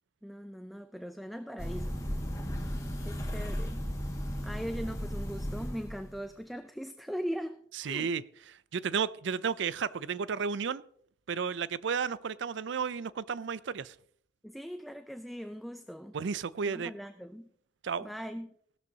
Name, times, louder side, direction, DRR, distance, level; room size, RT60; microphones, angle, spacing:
voice 1, 0.2-2.0 3.0-3.8 4.4-8.1 14.4-16.2 16.7-17.5 18.0-18.5, equal, ahead, 0.4 m, -40 dB
sound 1, 1.6-6.2, equal, 15° left, 1.9 m, -35 dB
voice 2, 7.8-8.2 8.7-10.8 11.3-13.9 16.1-16.9 17.8-18.1, right 6 dB, 70° right, 0.4 m, -32 dB
16.0 x 12.0 x 2.8 m
head